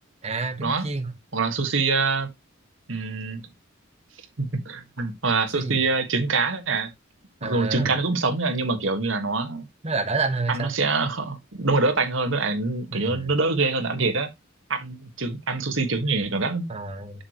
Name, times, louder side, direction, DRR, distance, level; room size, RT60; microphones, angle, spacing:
voice 1, 0.2-1.1 5.5-5.8 7.4-7.9 9.8-10.7 12.9-13.3 16.7-17.2, right 3 dB, 35° right, 1.5 m, -29 dB
voice 2, 1.3-2.3 2.9-3.4 4.4-6.9 7.4-9.6 10.5-14.3 14.7-16.7, right 3 dB, 75° right, 1.6 m, -25 dB
7.2 x 6.6 x 3.1 m
head